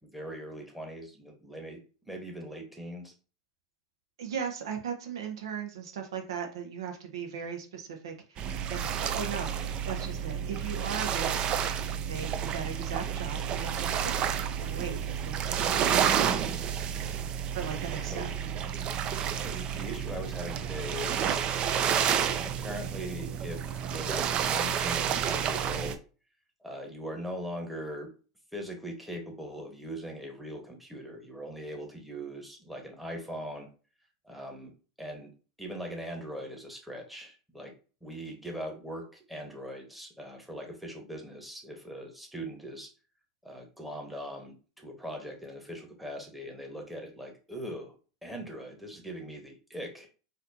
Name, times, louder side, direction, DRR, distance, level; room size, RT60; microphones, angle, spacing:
voice 1, 0.0-3.1 18.1-18.3 19.3-22.2 22.4-26.0 26.6-28.1 28.5-33.7 34.2-34.7 35.0-35.3 35.6-37.7 38.0-42.9 43.4-50.1, equal, 5° right, 2 dB, 1.2 m, -41 dB
voice 2, 4.2-8.4 8.7-11.7 12.1-15.4 15.7-16.3 17.5-18.3, right 7 dB, 80° right, 4 dB, 0.9 m, -38 dB
sound 1, 8.4-25.9, right 8 dB, 40° right, 0.4 m, -30 dB
4.1 x 2.7 x 2.7 m, 0.35 s
hypercardioid pair, 105°, 3 cm